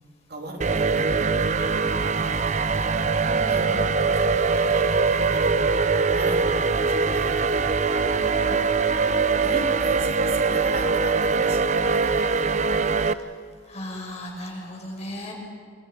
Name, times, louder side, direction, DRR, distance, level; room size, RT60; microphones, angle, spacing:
voice 1, 0.3-1.7 2.0-2.8 3.5-5.9 6.1-7.7 9.4-12.2, right 2 dB, 55° right, 2 dB, 3.1 m, -38 dB
sound 1, 0.6-13.1, right 4 dB, 40° right, 0.7 m, -22 dB
voice 2, 3.2-3.9 7.9-8.7 13.7-15.3, left 1 dB, 35° left, -1 dB, 5.9 m, -37 dB
29.0 x 24.5 x 5.2 m, 2.2 s
head